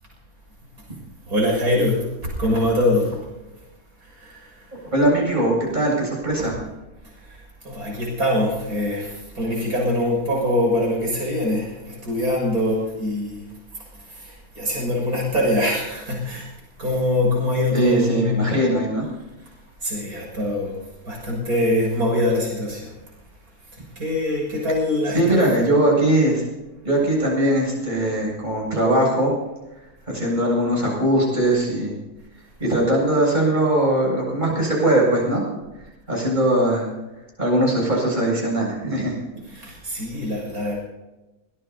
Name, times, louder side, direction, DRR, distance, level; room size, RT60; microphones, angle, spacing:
voice 1, 1.3-3.3 4.0-4.8 6.4-6.5 7.0-16.5 16.8-18.5 19.4-19.5 19.8-23.0 23.7-25.5 39.5-40.8, left 1 dB, 60° right, -2 dB, 7.1 m, -24 dB
voice 2, 4.9-6.6 17.7-19.1 25.1-26.4 26.8-29.3 29.8-32.0 32.6-35.4 36.1-36.9 37.4-39.2, right 1 dB, 25° right, -3 dB, 8.1 m, -20 dB
23.0 x 20.5 x 2.9 m, 1.1 s
omnidirectional pair, 1.8 m